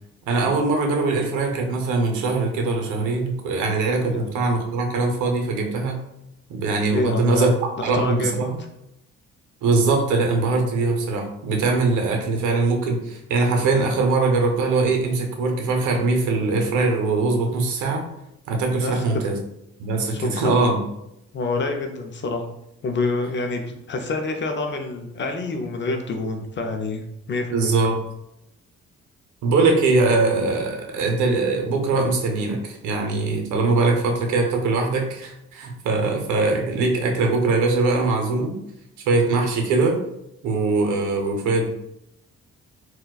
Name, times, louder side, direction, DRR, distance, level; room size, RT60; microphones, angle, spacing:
voice 1, 0.3-6.0 6.5-7.5 7.8-8.6 9.6-18.1 18.5-19.4 19.8-20.8 27.5-28.0 29.4-38.5 39.1-40.0 40.4-41.7, right 3 dB, 85° right, 3 dB, 0.7 m, -22 dB
voice 2, 6.9-7.5 7.8-8.4 18.8-19.1 20.1-20.7 21.3-22.5 22.8-27.0 27.3-27.7, left 3 dB, 40° left, 4 dB, 0.5 m, -27 dB
4.1 x 2.2 x 2.3 m, 0.83 s
cardioid pair, 75°, 29 cm